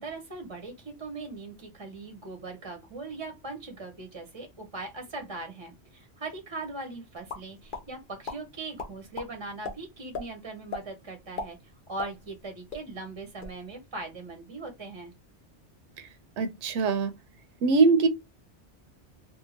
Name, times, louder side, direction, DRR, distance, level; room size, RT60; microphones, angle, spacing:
voice 1, 0.0-11.6 11.9-15.1, right 3 dB, 30° right, 0.6 m, -40 dB
sound 1, 7.3-7.8 8.2-8.4 8.8-9.3 9.6-9.7 10.1-10.3 10.7-10.9 11.2-12.4 12.7-12.8 13.2-13.6, left 4 dB, 55° left, 0.8 m, -36 dB
voice 2, 16.4-17.1 17.6-18.1, right 4 dB, 85° right, 0.9 m, -22 dB
2.7 x 2.4 x 2.8 m
omnidirectional pair, 1.2 m